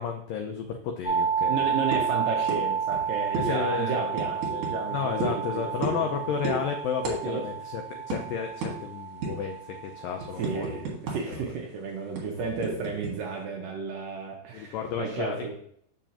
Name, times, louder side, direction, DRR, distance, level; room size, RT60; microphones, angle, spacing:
voice 1, 0.0-1.7 3.4-4.3 4.9-7.8 8.1-10.8 11.3-11.5 14.5-15.5, left 7 dB, 90° left, 4 dB, 1.9 m, -32 dB
sound 1, 1.0-10.8, right 7 dB, 45° left, 1.3 m, -31 dB
voice 2, 1.5-6.3 7.2-7.5 10.4-15.5, right 4 dB, 75° right, 0 dB, 2.1 m, -33 dB
sound 2, 1.9-2.1 2.5-2.6 2.9-3.0 3.3-3.5 4.1-4.7 5.2-5.4 5.8-6.1 6.4-6.6 7.0-7.2 7.5-7.6 8.1-8.2 8.6-8.7 9.2-9.5 9.9-11.4 11.6-11.7 12.2-13.1, right 4 dB, 55° right, 2.8 m, -32 dB
7.2 x 7.1 x 2.9 m, 0.67 s
omnidirectional pair, 4.8 m